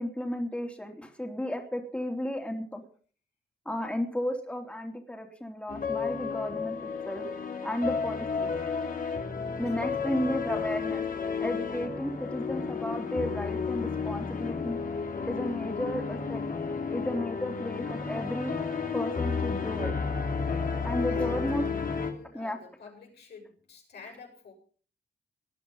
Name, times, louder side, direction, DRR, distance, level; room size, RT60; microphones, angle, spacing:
voice 1, 0.0-2.8 3.6-7.3 7.6-8.5 9.6-11.0 11.4-14.8 15.3-16.4 16.9-18.5 18.9-19.9 20.8-21.7 22.3-22.6, equal, 5° left, 3 dB, 3.1 m, -33 dB
sound 1, 5.7-22.1, left 5 dB, 55° left, 2.7 m, -32 dB
voice 2, 9.7-10.1 21.1-24.5, left 4 dB, 80° left, -1 dB, 7.1 m, -49 dB
19.5 x 11.0 x 5.6 m, 0.43 s
cardioid pair, 80°, 17 cm